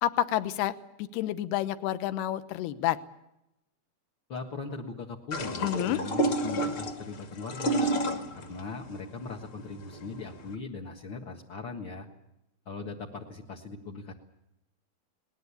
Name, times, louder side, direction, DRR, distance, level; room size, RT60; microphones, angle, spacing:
voice 1, 0.0-0.7 1.0-3.0 5.6-6.0, left 13 dB, 75° left, 13 dB, 3.0 m, -29 dB
voice 2, 4.3-7.9 8.3-12.1 12.6-14.1, left 4 dB, 55° left, 0 dB, 1.3 m, -39 dB
sound 1, 5.3-10.5, right 1 dB, 40° left, 2.5 m, -30 dB
21.0 x 20.0 x 8.4 m, 0.85 s
omnidirectional pair, 4.8 m